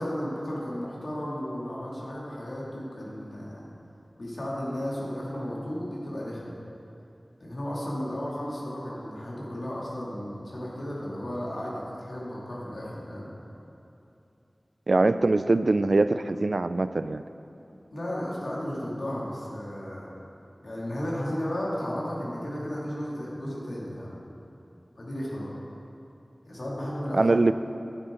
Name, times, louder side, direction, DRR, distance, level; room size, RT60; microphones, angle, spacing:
voice 1, 0.0-3.6 4.2-6.6 7.4-13.3 17.9-20.1 20.6-24.1 25.0-25.5 26.5-27.4, equal, 85° left, -6 dB, 2.5 m, -34 dB
voice 2, 14.9-17.2 27.1-27.5, right 2 dB, 75° right, 12 dB, 0.3 m, -22 dB
10.5 x 9.7 x 3.8 m, 2.8 s
wide cardioid pair, 45°, 0 cm